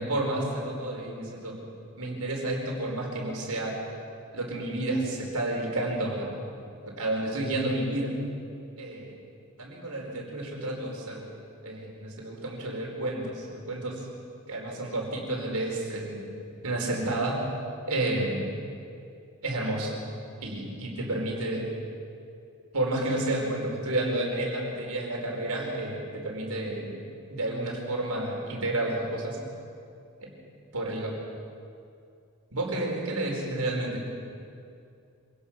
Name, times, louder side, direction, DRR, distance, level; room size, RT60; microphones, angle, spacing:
voice 1, 0.0-1.6 2.0-3.8 4.3-6.4 6.8-8.1 8.8-9.1 9.6-11.3 11.6-14.0 14.5-16.3 16.6-17.5 17.9-18.5 19.4-19.9 20.4-21.7 22.7-27.0 27.3-29.4 30.2-30.3 30.7-31.2 32.5-34.0, right 1 dB, 90° right, -1 dB, 4.8 m, -30 dB
25.5 x 18.0 x 6.4 m, 2.5 s
head